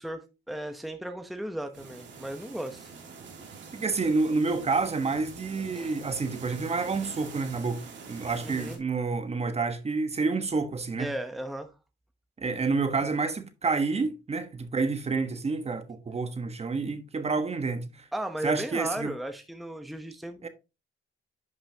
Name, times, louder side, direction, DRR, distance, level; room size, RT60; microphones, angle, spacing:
voice 1, 0.0-2.9 5.8-5.9 8.4-8.8 11.0-11.7 18.1-20.5, right 1 dB, ahead, 0.9 m, -35 dB
sound 1, 1.7-8.8, right 5 dB, 65° right, 2.9 m, -45 dB
voice 2, 3.7-11.1 12.4-18.1 18.4-19.1 20.4-20.5, right 4 dB, 30° right, 1.3 m, -29 dB
11.0 x 5.6 x 2.9 m
cardioid pair, 90°, 20 cm